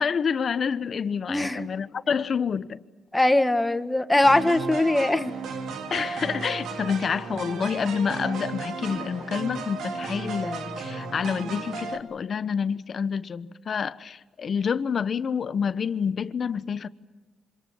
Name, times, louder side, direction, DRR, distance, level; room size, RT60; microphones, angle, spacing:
voice 1, 0.0-2.8 5.9-16.9, left 6 dB, 45° left, 1.1 m, -28 dB
voice 2, 1.3-1.6 3.1-5.4, left 1 dB, 10° left, 1.7 m, -21 dB
sound 1, 4.2-12.0, right 4 dB, 75° right, 2.9 m, -34 dB
27.0 x 26.5 x 7.2 m
cardioid pair, 90°, 0 cm